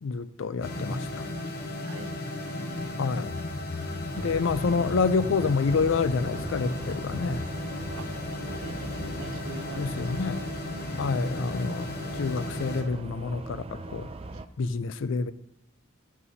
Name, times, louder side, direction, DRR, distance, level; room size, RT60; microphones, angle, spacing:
voice 1, 0.0-1.3 3.0-3.3 4.2-7.4 9.8-10.4 11.0-14.1 14.6-15.3, left 4 dB, 70° left, 0.4 m, -28 dB
sound 1, 0.6-12.8, left 2 dB, 45° left, 1.1 m, -34 dB
voice 2, 1.8-2.2 8.0-8.1 8.4-11.0 14.3-14.4, right 3 dB, 75° right, 0.6 m, -45 dB
sound 2, 4.1-14.5, right 2 dB, 25° right, 0.4 m, -40 dB
12.5 x 8.3 x 2.7 m
head